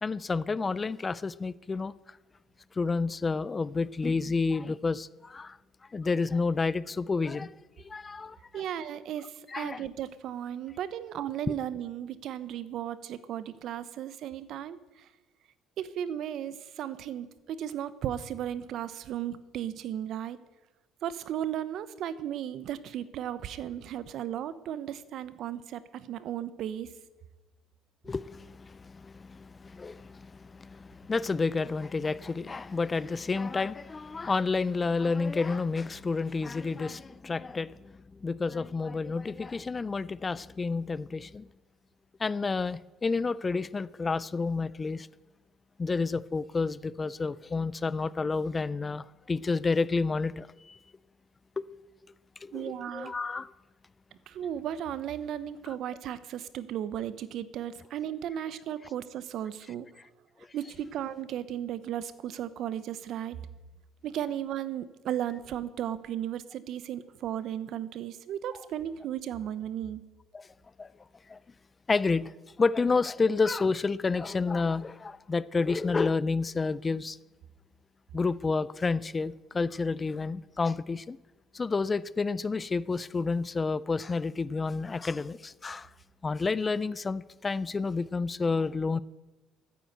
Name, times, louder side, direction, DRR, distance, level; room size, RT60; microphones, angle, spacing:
voice 1, 0.0-1.9 2.8-5.6 5.9-7.5 7.8-8.6 9.5-9.9 28.1-37.7 38.2-41.5 42.2-45.1 45.8-50.8 51.6-51.7 52.4-53.5 70.3-70.5 70.8-70.9 71.3-71.4 71.9-72.3 72.6-77.2 78.1-81.2 81.5-85.9 86.2-89.0, left 4 dB, 25° left, 0.4 m, -30 dB
voice 2, 8.5-14.8 15.8-20.4 21.0-26.9 52.5-53.1 54.3-59.9 60.5-63.4 64.0-70.0, right 10 dB, 60° right, 0.9 m, -35 dB
14.0 x 9.4 x 8.0 m
cardioid pair, 115°, 0 cm